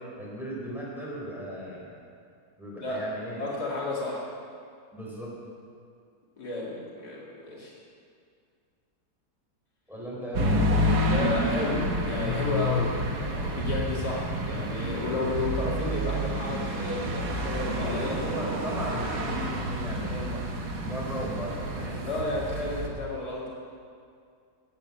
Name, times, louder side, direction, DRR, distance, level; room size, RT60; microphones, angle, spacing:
voice 1, 0.2-1.9 2.6-3.4 4.9-5.3 9.9-10.6 11.2-11.4 17.9-20.4 20.8-22.1, equal, ahead, -5 dB, 4.0 m, -36 dB
voice 2, 3.4-4.3 6.4-7.7 11.1-18.2 19.2-19.4 22.0-23.5, left 2 dB, 70° left, -5 dB, 3.0 m, -32 dB
sound 1, 10.3-22.9, equal, 70° right, 1.9 m, -29 dB
12.5 x 8.8 x 8.4 m, 2.3 s
omnidirectional pair, 1.8 m